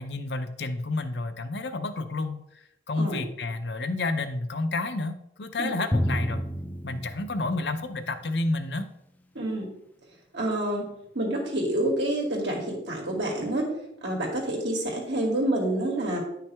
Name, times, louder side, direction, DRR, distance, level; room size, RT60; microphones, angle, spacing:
voice 1, 0.0-2.4 2.9-6.4 6.8-8.9, left 2 dB, 65° left, 8 dB, 0.7 m, -30 dB
Drum, 5.9-8.3, equal, 10° left, 0.4 m, -30 dB
voice 2, 9.3-9.7 10.3-10.9 11.1-13.7 14.0-16.2, right 1 dB, 80° right, -1 dB, 2.4 m, -28 dB
9.9 x 5.8 x 3.5 m, 0.80 s
head